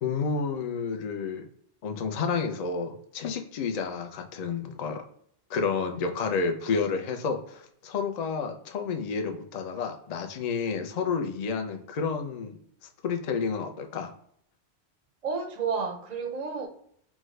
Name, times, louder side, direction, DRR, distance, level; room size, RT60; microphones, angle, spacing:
voice 1, 0.0-1.5 1.8-5.0 5.5-12.6 13.0-14.1, left 5 dB, 55° left, 0.4 m, -30 dB
voice 2, 15.2-16.7, right 5 dB, 50° right, 0.5 m, -31 dB
3.5 x 2.1 x 3.1 m
omnidirectional pair, 1.1 m